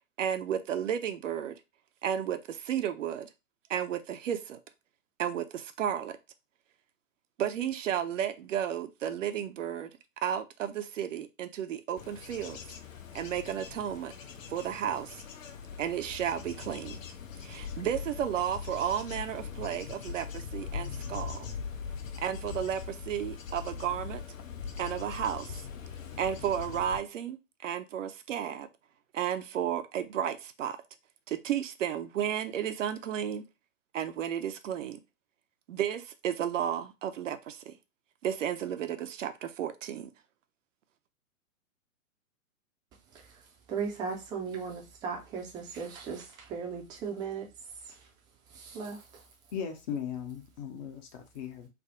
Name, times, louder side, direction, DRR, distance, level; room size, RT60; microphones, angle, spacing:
voice 1, 0.2-1.6 2.0-3.3 3.7-4.6 5.2-6.2 7.4-9.9 10.2-12.6 13.1-14.1 14.5-15.2 15.8-17.0 17.4-21.5 22.2-24.2 24.8-25.7 26.2-28.7 29.1-30.8 31.3-33.4 33.9-35.0 35.7-37.7 38.2-40.1, right 9 dB, 65° right, 0.6 m, -33 dB
Bird / Insect / Wind, 12.0-27.0, left 6 dB, 70° left, 0.7 m, -41 dB
voice 2, 43.7-47.5 47.8-48.0 48.5-49.2, right 6 dB, 10° right, 0.4 m, -37 dB
voice 3, 49.5-51.7, left 8 dB, 35° left, 0.6 m, -37 dB
3.4 x 2.0 x 3.6 m
hypercardioid pair, 120°, 41 cm